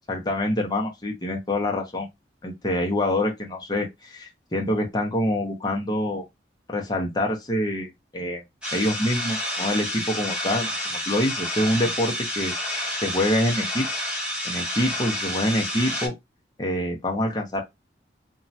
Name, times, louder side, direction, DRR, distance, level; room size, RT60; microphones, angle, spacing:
voice 1, 0.1-2.1 2.4-6.2 6.7-8.4 8.7-13.9 14.4-16.2 16.6-17.6, left 1 dB, 25° left, 0.6 m, -26 dB
sound 1, 8.6-16.1, left 1 dB, 5° right, 1.1 m, -29 dB
3.0 x 2.2 x 2.7 m
head